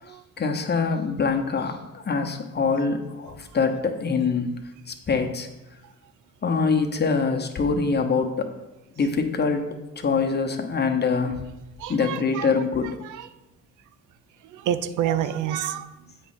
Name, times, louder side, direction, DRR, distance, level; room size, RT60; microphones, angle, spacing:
voice 1, 0.4-4.5 4.9-5.5 6.4-8.5 9.0-11.4 11.9-13.0, left 5 dB, 35° left, 4 dB, 0.9 m, -24 dB
voice 2, 11.8-12.5 13.0-13.3 14.4-15.9, right 10 dB, 80° right, 12 dB, 0.5 m, -28 dB
8.2 x 3.1 x 5.7 m, 0.99 s
cardioid pair, 90°, 30 cm